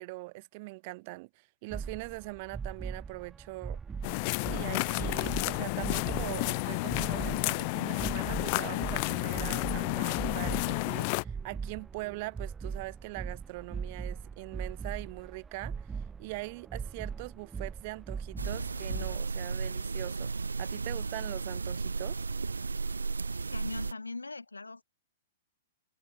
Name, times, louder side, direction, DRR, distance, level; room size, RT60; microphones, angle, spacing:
voice 1, 0.0-3.8 4.4-15.9 16.2-20.3 20.6-22.2, right 25 dB, 45° right, 6.1 m, -42 dB
sound 1, 1.7-19.1, right 5 dB, 15° right, 7.7 m, -40 dB
sound 2, 4.0-11.2, left 33 dB, 40° left, 1.1 m, -31 dB
sound 3, 18.4-23.9, right 4 dB, 80° right, 2.5 m, -34 dB
voice 2, 23.5-24.8, left 3 dB, 85° left, 4.2 m, -40 dB
figure-of-eight pair, 110°, 0 cm